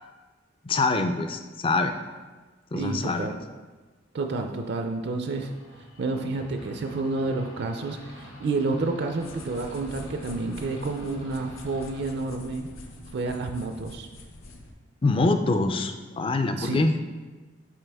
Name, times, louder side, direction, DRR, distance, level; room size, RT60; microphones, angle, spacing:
voice 1, 0.6-1.9 2.7-3.3 15.0-16.9, left 3 dB, 25° left, 7 dB, 0.3 m, -24 dB
voice 2, 2.7-3.4 4.1-5.5 6.0-12.7 13.1-14.1 16.6-16.9, right 3 dB, 55° right, 5 dB, 0.4 m, -29 dB
sound 1, 5.2-14.6, left 1 dB, 65° left, 1.3 m, -47 dB
sound 2, 9.2-14.7, left 1 dB, 85° left, 0.7 m, -45 dB
7.4 x 4.4 x 3.4 m, 1.3 s
head